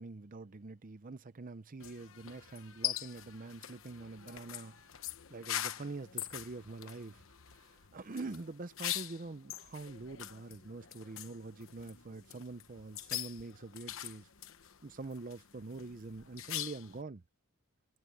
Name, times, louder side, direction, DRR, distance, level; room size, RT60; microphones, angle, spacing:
voice 1, 0.0-14.3 14.8-17.2, right 3 dB, 35° right, 0.6 m, -45 dB
sound 1, 1.8-17.0, left 12 dB, 60° left, 1.0 m, -43 dB
head